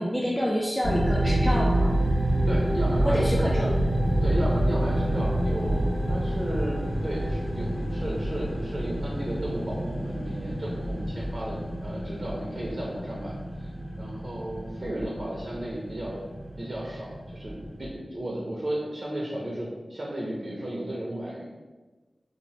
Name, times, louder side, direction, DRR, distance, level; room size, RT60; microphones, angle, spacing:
voice 1, 0.0-1.9 3.0-3.7, equal, 10° left, -4 dB, 0.4 m, -27 dB
sound 1, 0.8-17.9, right 1 dB, 70° left, 1.0 m, -28 dB
voice 2, 2.5-3.4 4.2-13.7 14.0-16.2 16.6-21.4, right 1 dB, 50° right, -4 dB, 0.6 m, -34 dB
2.8 x 2.5 x 3.1 m, 1.3 s
cardioid pair, 45°, 0 cm